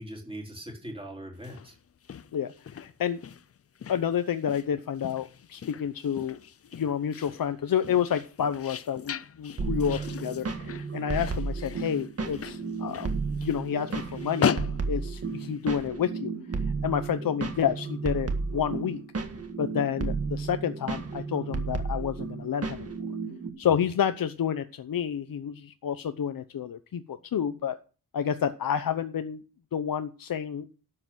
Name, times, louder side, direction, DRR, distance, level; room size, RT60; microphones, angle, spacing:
voice 1, 0.0-1.7 9.9-10.1 23.6-23.9, right 1 dB, 15° right, 1 dB, 3.7 m, -41 dB
sound 1, 1.3-15.8, left 7 dB, 45° left, 0.5 m, -37 dB
voice 2, 2.3-3.2 3.9-6.4 6.7-13.1 13.4-14.6 14.9-16.3 16.8-19.0 19.6-22.9 23.6-27.8 28.1-29.4 29.7-30.7, left 8 dB, 80° left, 10 dB, 0.8 m, -29 dB
sound 2, 9.6-23.5, right 4 dB, 45° right, 1.8 m, -33 dB
12.0 x 7.8 x 6.2 m, 0.35 s
wide cardioid pair, 175°, 34 cm